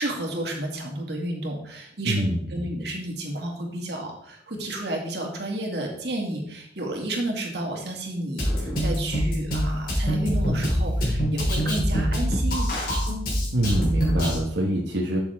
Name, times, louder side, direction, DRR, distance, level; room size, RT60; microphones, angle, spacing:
voice 1, 0.0-12.8, right 1 dB, 65° right, 1 dB, 2.4 m, -31 dB
voice 2, 2.0-2.6 13.5-15.2, right 1 dB, 80° right, -2 dB, 1.4 m, -25 dB
Drum kit, 8.4-14.4, equal, 55° left, 3.6 m, -24 dB
12.5 x 6.9 x 3.6 m, 0.72 s
head